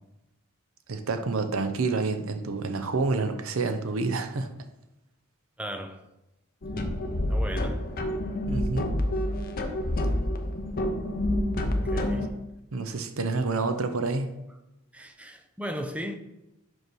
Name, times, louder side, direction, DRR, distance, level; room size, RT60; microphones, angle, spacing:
voice 1, 0.9-4.5 8.5-8.9 12.1-12.2 12.7-14.3, right 3 dB, 70° right, 0.7 m, -28 dB
voice 2, 5.6-6.0 7.3-7.8 10.0-10.2 11.6-12.4 14.9-16.2, equal, 5° right, 0.5 m, -37 dB
sound 1, 6.6-12.3, left 1 dB, 40° left, 0.7 m, -28 dB
5.6 x 5.4 x 4.6 m
head